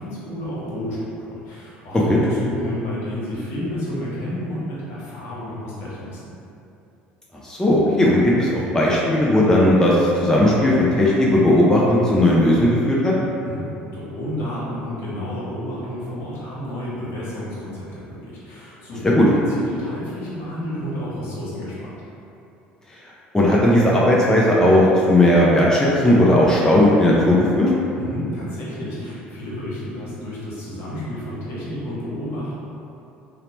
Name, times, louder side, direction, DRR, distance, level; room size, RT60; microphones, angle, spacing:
voice 1, 0.0-6.2 13.4-19.2 19.5-21.9 28.0-32.5, left 1 dB, 65° left, -8 dB, 1.0 m, -31 dB
voice 2, 7.4-13.1 19.2-19.3 23.3-27.7, left 1 dB, 10° left, -5 dB, 0.4 m, -16 dB
2.9 x 2.0 x 2.9 m, 2.7 s
hypercardioid pair, 75°, 5 cm